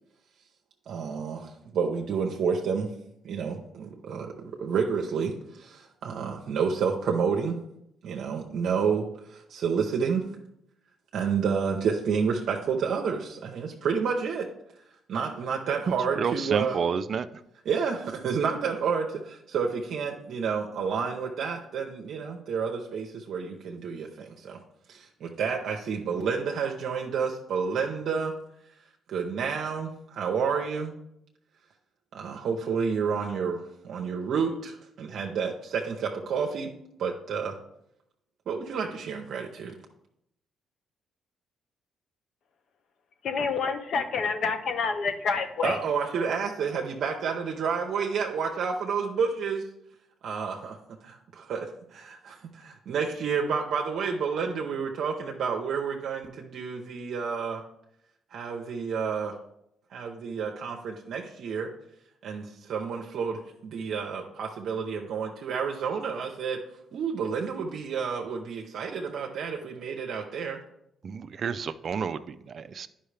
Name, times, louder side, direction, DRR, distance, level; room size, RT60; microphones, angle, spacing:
voice 1, 0.9-2.9 3.2-7.6 8.0-10.3 11.1-14.5 15.1-16.8 17.6-24.6 24.9-28.3 29.1-30.9 32.1-36.7 37.0-37.6 38.5-39.8 45.6-49.7 50.2-50.8 51.0-57.6 58.3-59.4 59.9-61.7 62.2-66.6 66.9-70.6, right 6 dB, 70° right, 1 dB, 0.7 m, -30 dB
voice 2, 16.2-17.3 71.0-72.9, right 6 dB, 50° right, 11 dB, 0.3 m, -30 dB
voice 3, 43.2-45.8, left 5 dB, 65° left, 8 dB, 0.9 m, -28 dB
10.0 x 5.5 x 3.3 m, 0.79 s
cardioid pair, 90°, 0 cm